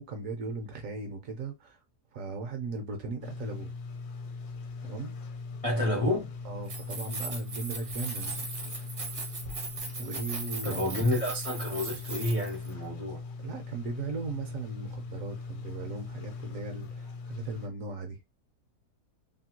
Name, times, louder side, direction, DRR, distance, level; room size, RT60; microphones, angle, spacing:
voice 1, 0.0-1.8 2.1-3.7 4.8-5.2 5.8-6.0 6.4-8.5 10.0-11.0 13.4-18.2, right 3 dB, 65° right, 0.9 m, -38 dB
sound 1, 3.2-17.7, left 4 dB, 75° left, 1.2 m, -40 dB
voice 2, 5.6-6.3 10.6-13.2, left 1 dB, 50° left, 0.4 m, -29 dB
Keys jangling, 6.6-12.7, right 3 dB, 50° right, 0.7 m, -39 dB
2.8 x 2.3 x 2.9 m
omnidirectional pair, 1.7 m